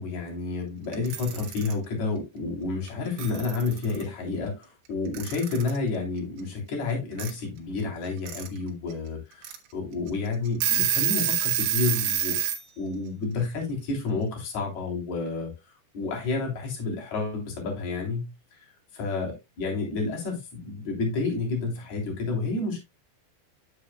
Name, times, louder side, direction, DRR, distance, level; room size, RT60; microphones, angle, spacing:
voice 1, 0.0-12.4 12.8-15.5 15.9-18.7 18.9-22.8, left 3 dB, 40° left, 4.4 m, -30 dB
Alarm / Clock, 0.9-1.7 2.9-3.0 3.2-4.0 5.1-5.8 7.2-7.3 8.0-8.5 8.9-9.0 9.4-9.6 10.1-10.2 10.5-12.6, right 10 dB, 80° right, 3.5 m, -27 dB
10.0 x 8.4 x 2.2 m
omnidirectional pair, 5.0 m